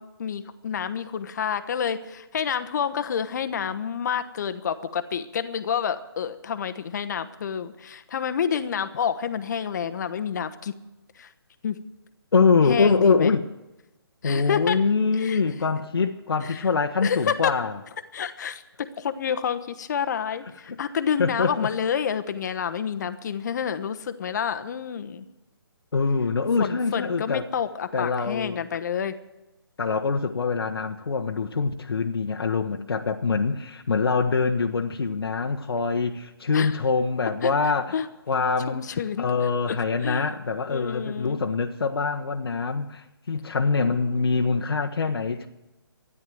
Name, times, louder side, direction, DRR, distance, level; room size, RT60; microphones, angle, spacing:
voice 1, 0.0-10.7 11.2-11.3 11.6-11.8 12.7-13.3 14.2-14.8 15.1-15.4 16.4-16.6 17.0-17.6 18.1-25.3 26.6-29.2 36.5-36.8 37.4-37.5 37.9-38.1 38.7-39.3 39.7-39.8 40.0-40.4 40.7-41.4, left 7 dB, 45° left, 1.1 m, -29 dB
voice 2, 12.3-13.5 14.2-17.8 20.7-20.8 21.2-21.7 25.9-27.5 27.9-28.6 29.8-38.0 38.3-38.8 39.2-45.5, left 4 dB, 75° left, 1.1 m, -24 dB
13.5 x 10.5 x 9.2 m
hypercardioid pair, 155°, 13 cm